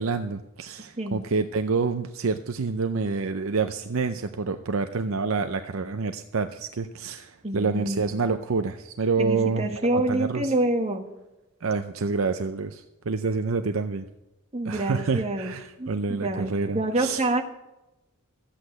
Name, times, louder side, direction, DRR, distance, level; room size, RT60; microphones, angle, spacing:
voice 1, 0.0-10.5 11.6-14.0 14.7-17.2, right 4 dB, 65° right, 8 dB, 0.6 m, -28 dB
voice 2, 7.4-8.0 9.2-11.1 14.5-15.5 15.8-17.4, right 1 dB, 30° right, 4 dB, 1.3 m, -27 dB
13.0 x 8.4 x 7.9 m, 0.97 s
head